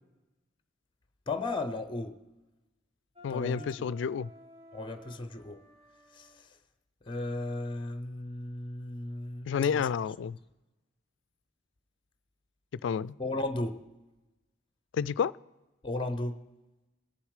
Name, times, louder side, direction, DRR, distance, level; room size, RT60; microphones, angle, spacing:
voice 1, 1.3-2.2 3.3-3.9 4.7-5.6 6.1-6.5 7.0-9.9 13.2-13.8 15.8-16.4, left 2 dB, 25° left, 0.6 m, -35 dB
voice 2, 3.2-4.3 9.5-10.4 12.8-13.1 14.9-15.3, left 7 dB, 65° left, 0.3 m, -30 dB
Wind instrument woodwind instrument, 3.2-6.4, left 1 dB, 35° right, 1.5 m, -53 dB
21.0 x 7.1 x 4.8 m
head